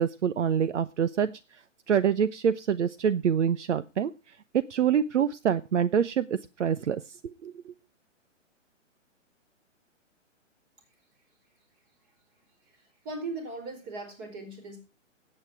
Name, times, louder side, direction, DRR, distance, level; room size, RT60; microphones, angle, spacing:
voice 1, 0.0-1.4 1.9-4.1 4.5-7.7, right 8 dB, 65° right, 14 dB, 1.0 m, -26 dB
voice 2, 13.0-14.8, right 2 dB, 25° right, 7 dB, 4.5 m, -38 dB
18.0 x 9.0 x 4.8 m, 0.29 s
hypercardioid pair, 155°, 38 cm